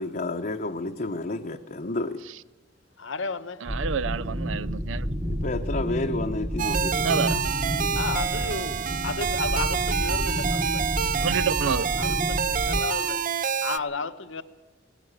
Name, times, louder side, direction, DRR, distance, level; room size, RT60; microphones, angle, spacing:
voice 1, 0.0-2.2 5.2-7.2, left 2 dB, 45° left, 0.8 m, -30 dB
voice 2, 3.0-3.6 7.9-10.9 12.0-13.2 13.6-14.4, left 4 dB, 80° left, 1.1 m, -33 dB
voice 3, 3.6-5.1 7.0-7.4 11.0-11.9, right 6 dB, 85° right, 0.6 m, -29 dB
sound 1, 3.7-12.8, equal, 15° right, 1.1 m, -30 dB
sound 2, 6.6-13.8, right 7 dB, 45° right, 0.6 m, -27 dB
19.0 x 14.0 x 9.9 m
head